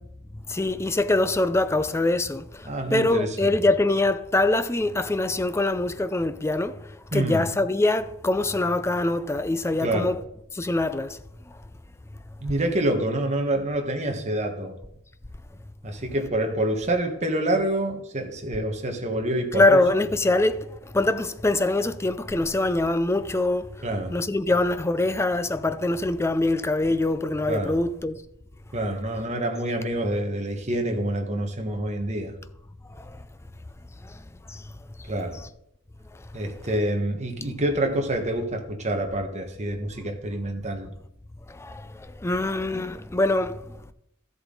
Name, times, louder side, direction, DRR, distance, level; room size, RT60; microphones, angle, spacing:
voice 1, 0.5-10.2 10.5-11.2 19.5-28.2 32.9-33.2 34.0-34.2 34.5-34.7 41.5-43.9, left 2 dB, 10° left, 0.4 m, -24 dB
voice 2, 2.6-3.6 7.1-7.4 9.8-10.1 12.4-14.7 15.8-19.6 23.8-24.1 27.5-27.8 28.7-32.3 35.1-35.4 36.3-40.9, right 1 dB, 30° right, 1.4 m, -27 dB
13.5 x 7.9 x 3.9 m
head